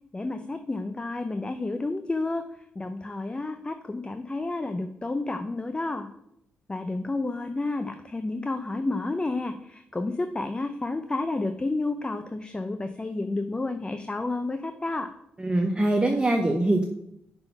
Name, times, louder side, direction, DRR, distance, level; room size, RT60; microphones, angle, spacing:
voice 1, 0.1-2.4 2.8-6.1 6.7-15.1, left 2 dB, 20° left, 8 dB, 0.5 m, -30 dB
voice 2, 15.4-16.8, right 1 dB, 20° right, 3 dB, 0.8 m, -23 dB
5.8 x 3.9 x 5.5 m, 0.76 s
supercardioid pair, 60°, 4 cm